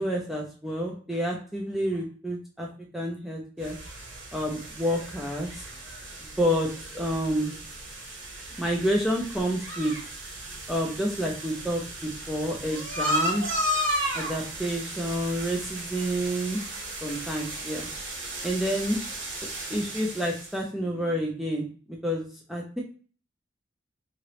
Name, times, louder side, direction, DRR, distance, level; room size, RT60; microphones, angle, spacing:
voice 1, 0.0-2.7 2.9-3.8 4.3-5.6 6.2-7.5 8.6-9.9 10.7-13.5 14.1-16.6 17.0-17.9 18.4-19.0 19.4-22.8, equal, ahead, -2 dB, 0.4 m, -29 dB
sound 1, 3.6-20.6, equal, 85° right, 1.1 m, -34 dB
3.0 x 2.9 x 2.9 m, 0.40 s
head